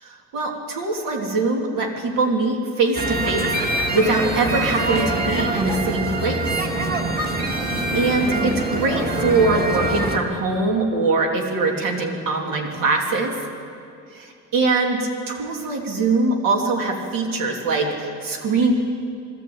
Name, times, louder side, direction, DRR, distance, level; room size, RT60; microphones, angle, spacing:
voice 1, 0.0-6.5 7.5-13.4 14.1-15.0 15.3-18.7, right 3 dB, 80° right, 2 dB, 2.9 m, -22 dB
sound 1, 2.9-10.2, right 2 dB, 30° right, 1.9 m, -24 dB
23.0 x 13.0 x 8.6 m, 2.5 s
cardioid pair, 145°, 33 cm